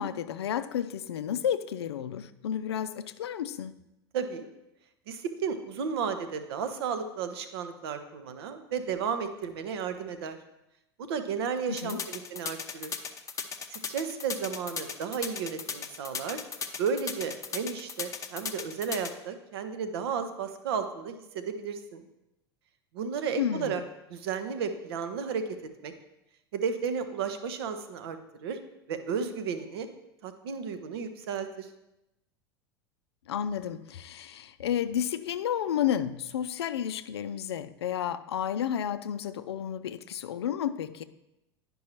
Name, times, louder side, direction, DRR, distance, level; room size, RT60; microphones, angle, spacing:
voice 1, 0.0-3.7 11.7-12.0 23.4-23.8 33.3-41.0, left 9 dB, 75° left, 0.4 m, -31 dB
voice 2, 4.1-4.5 5.1-10.4 11.0-12.9 13.7-16.4 16.8-22.0 22.9-23.8 24.1-25.5 25.8-25.9 26.5-28.6 28.9-29.9 30.2-31.7, right 6 dB, 65° right, 0.8 m, -33 dB
sound 1, 11.8-19.1, left 6 dB, 20° left, 0.6 m, -36 dB
10.5 x 5.4 x 3.0 m
figure-of-eight pair, 85°, 14 cm